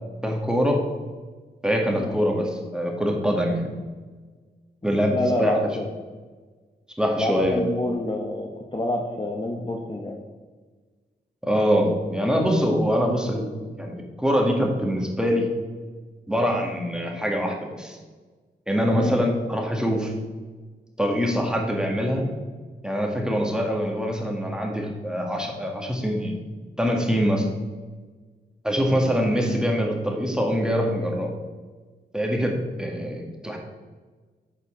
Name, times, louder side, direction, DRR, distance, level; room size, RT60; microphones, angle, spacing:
voice 1, 0.2-0.8 1.6-3.7 4.8-5.5 7.0-7.6 11.4-13.5 13.8-15.5 16.3-18.0 18.7-20.1 21.0-22.3 22.8-26.3 26.8-27.5 28.6-31.3 32.1-33.6, equal, 5° right, 0 dB, 1.6 m, -24 dB
voice 2, 4.8-5.9 7.2-10.2 18.9-19.2, left 1 dB, 25° left, 0 dB, 0.8 m, -27 dB
7.2 x 4.2 x 4.3 m, 1.4 s
cardioid pair, 50°, 19 cm